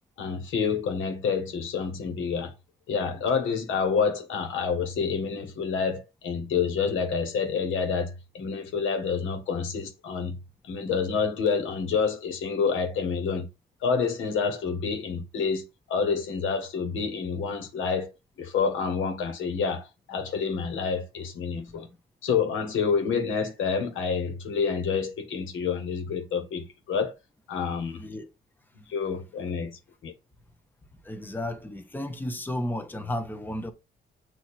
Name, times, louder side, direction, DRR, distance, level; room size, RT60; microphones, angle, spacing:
voice 1, 0.2-2.5 2.9-10.4 10.6-13.5 13.8-18.1 18.4-21.9 22.2-27.1 27.5-28.0 28.8-30.1, left 5 dB, 80° left, 1.7 m, -28 dB
voice 2, 28.0-28.3 31.0-33.7, left 1 dB, 10° left, 1.0 m, -33 dB
7.0 x 3.1 x 4.4 m
cardioid pair, 90°, 20 cm